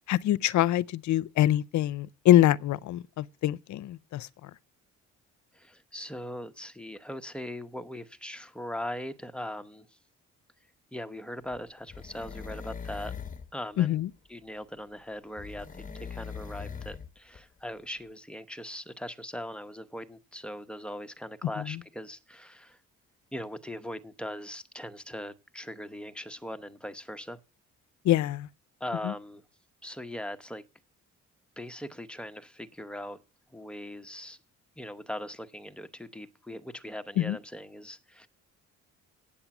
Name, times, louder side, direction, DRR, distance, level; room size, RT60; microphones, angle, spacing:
voice 1, 0.1-4.3 13.8-14.1 28.1-28.5 37.2-37.4, left 13 dB, 70° left, 0.6 m, -24 dB
voice 2, 5.5-10.0 10.9-13.1 13.5-14.0 14.3-22.8 23.3-27.4 28.8-29.4 29.8-30.6 31.6-33.2 33.5-34.4 34.8-38.3, left 1 dB, 5° left, 0.9 m, -40 dB
sound 1, 11.5-13.5 15.4-17.1 17.4-17.5, left 6 dB, 25° left, 1.2 m, -41 dB
8.7 x 8.5 x 7.1 m
cardioid pair, 90°, 30 cm